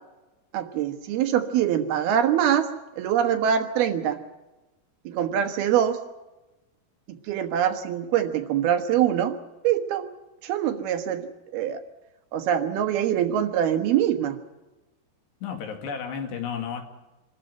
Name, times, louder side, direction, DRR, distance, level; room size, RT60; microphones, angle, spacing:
voice 1, 0.5-4.2 5.0-6.0 7.1-9.4 9.6-10.1 10.4-11.8 12.3-14.4, right 9 dB, 70° right, 8 dB, 3.1 m, -24 dB
voice 2, 15.4-16.8, left 7 dB, 80° left, 5 dB, 4.3 m, -32 dB
26.0 x 13.5 x 9.2 m, 1.1 s
omnidirectional pair, 4.8 m